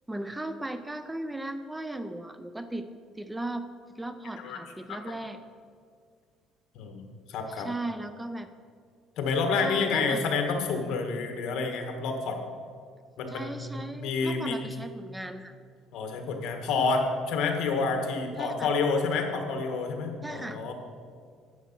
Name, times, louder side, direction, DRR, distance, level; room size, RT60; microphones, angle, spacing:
voice 1, 0.1-2.9 3.2-3.7 4.0-5.4 7.6-8.5 9.5-10.2 13.3-15.6 18.4-18.7 20.2-20.6, right 1 dB, 5° right, 10 dB, 0.4 m, -36 dB
voice 2, 6.7-7.7 9.2-12.4 13.2-14.6 15.9-20.7, left 4 dB, 65° left, 4 dB, 1.6 m, -29 dB
10.5 x 8.0 x 5.9 m, 2.1 s
cardioid pair, 145°, 0 cm